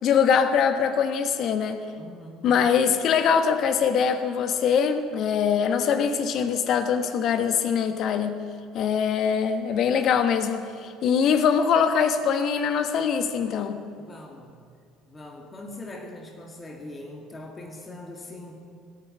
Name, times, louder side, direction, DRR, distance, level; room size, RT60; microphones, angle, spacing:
voice 1, 0.0-1.8 2.4-8.4 8.7-13.8, left 7 dB, 50° left, 9 dB, 1.2 m, -23 dB
voice 2, 1.9-2.6 14.0-14.6 15.1-18.6, left 1 dB, 25° left, 1 dB, 2.1 m, -41 dB
18.0 x 8.8 x 8.4 m, 2.3 s
figure-of-eight pair, 60°, 0 cm